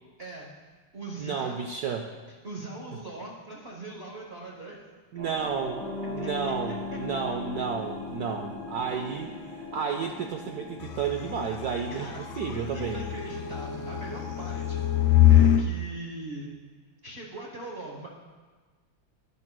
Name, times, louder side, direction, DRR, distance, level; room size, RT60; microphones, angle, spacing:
voice 1, 0.2-0.5 0.9-1.6 2.4-4.8 6.2-6.3 11.9-16.5 17.0-18.1, right 2 dB, 45° right, -3 dB, 0.9 m, -41 dB
voice 2, 1.2-2.1 5.1-13.1, right 6 dB, 85° right, 4 dB, 0.8 m, -32 dB
sound 1, 5.2-15.5, left 1 dB, 70° right, 2.7 m, -41 dB
Bass guitar, 5.8-9.9, left 4 dB, 15° left, 1.7 m, -40 dB
sound 2, 10.8-15.7, left 11 dB, 85° left, 1.4 m, -24 dB
11.0 x 10.5 x 2.2 m, 1.4 s
omnidirectional pair, 2.2 m